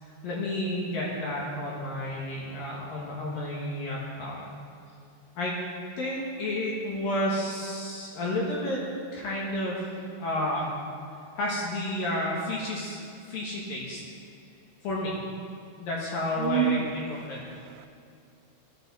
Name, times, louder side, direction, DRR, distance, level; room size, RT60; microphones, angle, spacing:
voice 1, 0.0-4.5 5.4-5.5 6.0-8.8 9.1-9.8 10.2-10.8 11.4-13.0 13.3-14.0 14.8-15.2 15.8-17.4, left 1 dB, 60° left, -4 dB, 2.5 m, -31 dB
voice 2, 16.4-16.9 17.3-17.9, right 10 dB, 90° right, 10 dB, 3.2 m, -28 dB
15.5 x 12.0 x 4.2 m, 2.5 s
omnidirectional pair, 5.8 m